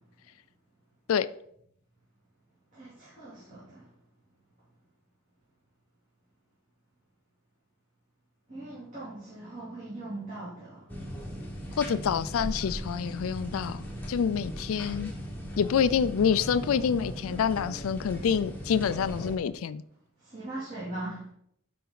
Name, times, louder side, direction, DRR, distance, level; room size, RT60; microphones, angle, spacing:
voice 1, 2.7-3.9 8.5-10.8 20.2-21.3, right 2 dB, 35° right, 2.8 m, -40 dB
sound 1, 10.9-19.4, equal, 10° left, 1.1 m, -38 dB
voice 2, 11.8-15.1 15.6-19.8, left 7 dB, 75° left, 0.4 m, -27 dB
10.0 x 4.2 x 3.9 m
head